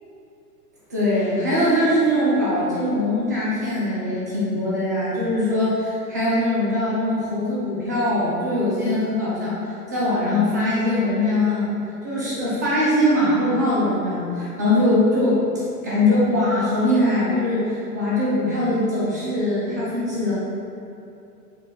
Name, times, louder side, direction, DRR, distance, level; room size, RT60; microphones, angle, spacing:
voice 1, 0.9-9.6 9.9-11.7 12.0-15.4 15.8-20.3, left 1 dB, 10° right, -8 dB, 0.5 m, -21 dB
6.6 x 3.7 x 6.0 m, 2.6 s
hypercardioid pair, 170°, 47 cm